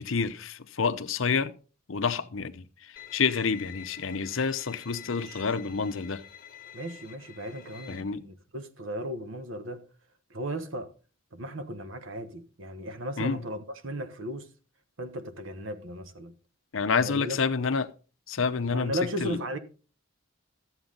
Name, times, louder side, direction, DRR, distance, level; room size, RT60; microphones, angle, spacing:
voice 1, 0.0-1.5 1.9-2.6 3.1-6.2 7.9-8.2 13.2-13.4 16.7-17.9 18.3-19.4, left 5 dB, 70° left, 0.7 m, -28 dB
Bowed string instrument, 3.0-8.0, left 10 dB, 45° left, 1.4 m, -47 dB
voice 2, 5.1-5.5 6.7-9.8 10.3-10.9 11.3-14.5 15.0-16.3 17.0-17.4 18.7-19.6, equal, 70° right, 1.2 m, -36 dB
13.0 x 8.1 x 3.9 m
head